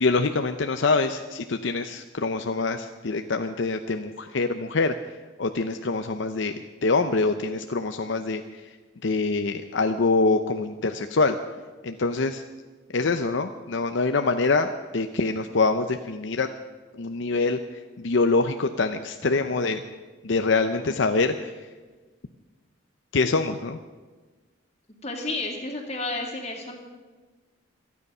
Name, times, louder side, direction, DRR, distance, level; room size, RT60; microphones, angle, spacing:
voice 1, 0.0-4.9 5.4-6.5 6.8-8.4 9.0-11.4 11.8-12.4 12.9-16.5 17.0-17.6 18.0-19.8 20.2-21.5 23.1-23.8, left 3 dB, 65° left, 7 dB, 0.6 m, -24 dB
voice 2, 25.0-26.8, left 2 dB, 30° left, 2 dB, 2.5 m, -31 dB
26.5 x 9.6 x 5.5 m, 1.3 s
head